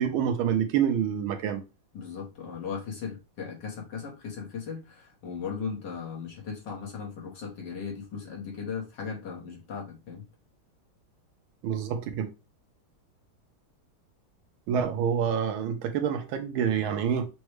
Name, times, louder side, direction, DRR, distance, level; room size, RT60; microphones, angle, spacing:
voice 1, 0.0-1.6 11.6-12.3 14.7-17.3, right 8 dB, 80° right, 1.5 m, -27 dB
voice 2, 1.9-10.2, left 6 dB, 60° left, 1.5 m, -37 dB
6.3 x 2.2 x 3.0 m
omnidirectional pair, 2.3 m